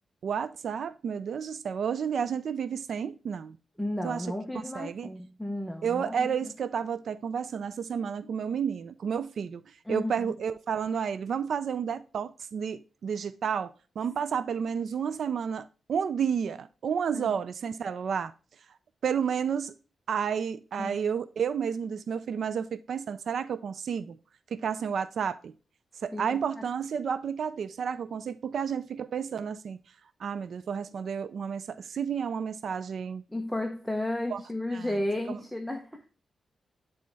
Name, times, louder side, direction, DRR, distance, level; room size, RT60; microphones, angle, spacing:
voice 1, 0.2-3.6 4.0-4.3 4.7-5.1 5.8-18.3 19.0-19.7 20.1-24.2 24.5-25.6 26.0-29.8 30.2-33.2 34.3-34.4 34.7-34.9 35.3-35.4, right 7 dB, 65° right, 0.3 m, -31 dB
voice 2, 3.8-6.5 9.9-10.4 17.1-17.3 20.8-21.0 26.1-26.4 33.3-36.1, left 1 dB, ahead, 0.7 m, -33 dB
9.4 x 4.2 x 3.3 m
wide cardioid pair, 120°, 0 cm